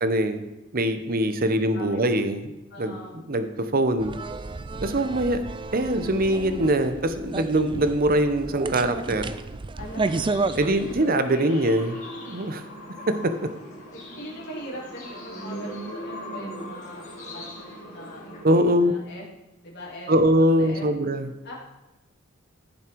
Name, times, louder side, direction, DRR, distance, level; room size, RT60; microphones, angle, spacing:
voice 1, 0.0-0.4 0.7-2.5 2.8-3.0 3.3-4.1 4.8-5.4 5.7-9.3 10.6-12.0 12.3-12.6 13.1-13.5 18.4-18.9 20.1-21.3, right 1 dB, 45° right, 10 dB, 0.9 m, -23 dB
voice 2, 1.4-2.0 2.7-3.1 4.7-5.0 9.8-10.3 10.7-11.0 13.9-19.2 19.6-20.9 21.4-21.5, equal, 55° left, -4 dB, 3.4 m, -42 dB
sound 1, 4.0-11.1, right 3 dB, 25° right, 0.4 m, -32 dB
Bass guitar, 6.2-10.0, left 8 dB, 10° left, 4.3 m, -45 dB
sound 2, 9.8-18.4, equal, 35° left, 3.4 m, -39 dB
15.0 x 7.3 x 4.6 m, 0.98 s
head